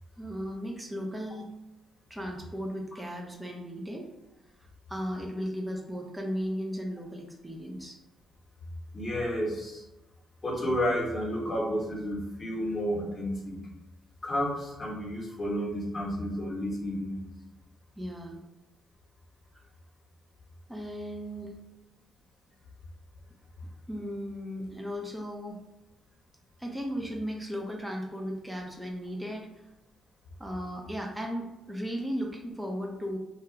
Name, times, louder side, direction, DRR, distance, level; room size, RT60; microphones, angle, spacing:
voice 1, 0.2-1.5 2.1-4.1 4.9-8.0 18.0-18.4 20.7-21.6 23.9-25.7 26.6-29.5 30.4-33.2, equal, 10° right, 1 dB, 0.5 m, -36 dB
voice 2, 8.9-9.8 10.4-13.6 14.2-17.3, equal, 30° left, -2 dB, 0.9 m, -31 dB
2.3 x 2.3 x 3.0 m, 0.97 s
cardioid pair, 90°, 0 cm